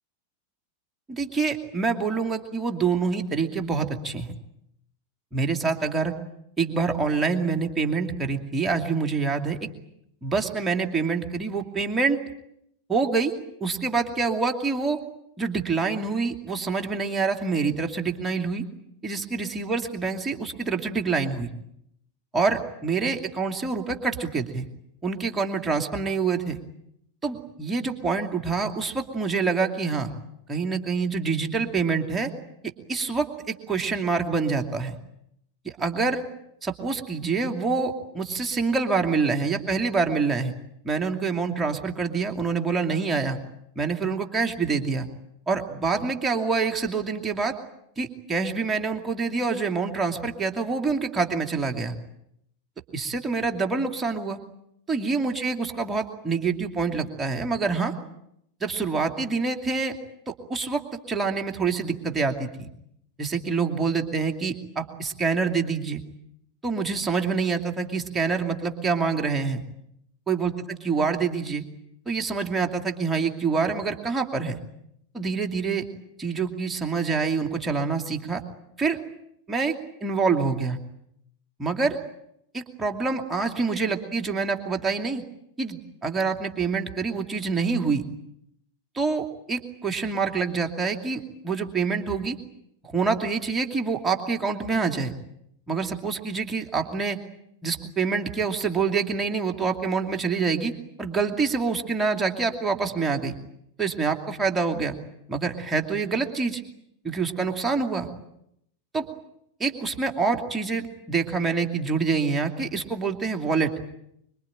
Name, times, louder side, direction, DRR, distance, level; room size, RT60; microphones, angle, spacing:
voice 1, 1.1-4.3 5.3-6.1 6.6-9.6 10.2-12.2 12.9-13.3 13.6-15.0 15.4-18.7 19.0-21.5 22.3-24.7 25.0-26.6 27.2-30.1 30.5-32.3 32.6-34.9 35.6-36.2 36.6-40.5 40.8-43.4 43.8-45.1 45.5-47.6 48.0-51.9 52.9-54.4 54.9-57.9 58.6-60.0 60.3-62.7 63.2-66.0 66.6-69.6 70.3-71.6 72.1-74.6 75.1-75.8 76.2-78.4 78.8-79.0 79.5-79.7 80.0-80.8 81.6-82.0 82.5-85.2 85.6-88.0 88.9-92.4 92.9-95.1 95.7-97.2 97.6-100.7 101.0-103.3 103.8-104.9 105.3-106.6 107.0-108.1 108.9-109.1 109.6-113.7, right 4 dB, 15° right, 3 dB, 2.8 m, -26 dB
25.0 x 24.0 x 9.0 m, 0.77 s
figure-of-eight pair, 90°, 0 cm